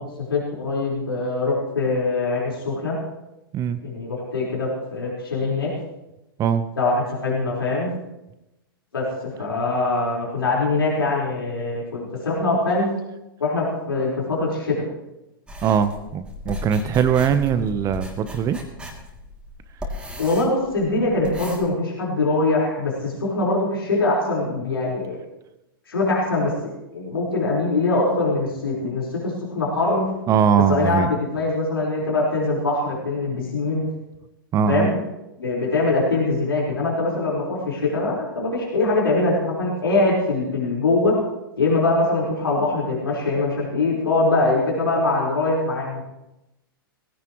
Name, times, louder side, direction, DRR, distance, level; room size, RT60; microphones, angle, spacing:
voice 1, 0.2-2.9 3.8-5.7 6.8-7.9 8.9-12.9 13.4-14.8 20.2-25.2 25.9-30.1 30.7-33.9 34.7-34.9 35.4-41.1 41.6-46.0, left 2 dB, 80° left, -5 dB, 4.7 m, -23 dB
sound 1, 15.5-21.6, left 1 dB, 10° right, 2.9 m, -36 dB
voice 2, 15.6-18.6 30.3-31.1 34.5-34.9, right 7 dB, 25° right, 12 dB, 1.0 m, -21 dB
20.0 x 16.0 x 3.2 m, 0.94 s
hypercardioid pair, 110°, 12 cm